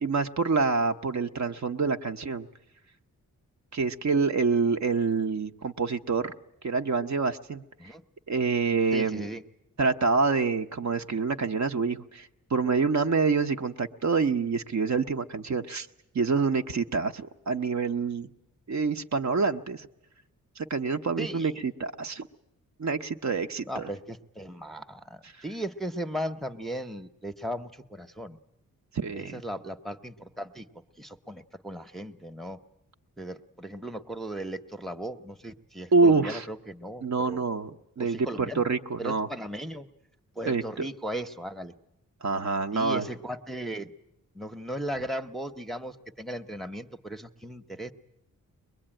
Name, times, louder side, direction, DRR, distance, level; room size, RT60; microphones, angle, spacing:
voice 1, 0.0-2.5 3.7-6.3 6.6-7.9 8.3-9.3 9.8-15.9 16.1-18.3 18.7-19.9 20.6-22.3 22.8-23.9 28.9-29.4 35.9-36.5 37.0-39.3 40.4-40.9 42.2-43.1, right 4 dB, 55° right, 7 dB, 0.8 m, -27 dB
voice 2, 8.9-9.4 21.2-21.6 23.7-28.4 29.1-30.7 31.0-32.6 33.2-37.4 38.0-38.6 39.0-39.9 40.4-41.7 42.7-43.9 44.3-47.9, right 1 dB, ahead, 6 dB, 0.8 m, -37 dB
23.0 x 21.0 x 8.9 m, 0.87 s
wide cardioid pair, 105°, 34 cm